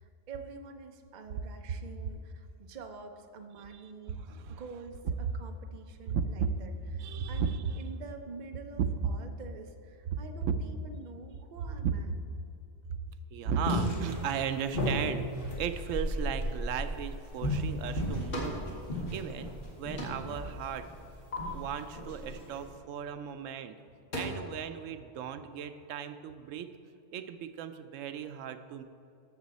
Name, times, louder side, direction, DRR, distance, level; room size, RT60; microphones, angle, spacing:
voice 1, 0.0-4.2 4.5-12.1, right 4 dB, 45° right, 5 dB, 0.7 m, -47 dB
voice 2, 3.6-4.6 6.1-6.6 6.9-7.8 8.8-8.9 10.1-10.5 11.8-12.2 12.9-13.0 13.3-18.6 19.1-19.5 19.8-20.9 21.5-23.8 24.1-26.7 27.1-28.8, right 7 dB, 85° right, 10 dB, 0.9 m, -35 dB
sound 1, 13.6-22.7, equal, 45° left, 1.7 m, -35 dB
sound 2, 18.3-18.6 19.0-19.7 20.0-20.4 20.8-21.4 23.2-23.4 23.8-24.2, left 1 dB, 85° left, 2.2 m, -40 dB
13.0 x 6.9 x 4.1 m, 2.6 s
omnidirectional pair, 1.3 m